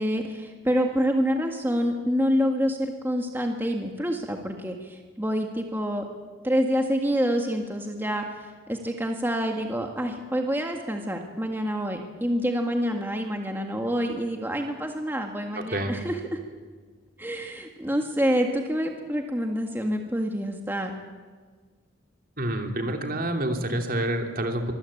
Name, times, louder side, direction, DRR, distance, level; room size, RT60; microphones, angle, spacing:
voice 1, 0.0-6.1 6.4-8.4 8.7-16.4 17.2-20.9, equal, 10° right, 3 dB, 1.8 m, -27 dB
voice 2, 15.5-15.9 22.4-24.7, right 1 dB, 50° right, 4 dB, 2.9 m, -28 dB
25.0 x 20.5 x 8.6 m, 1.5 s
head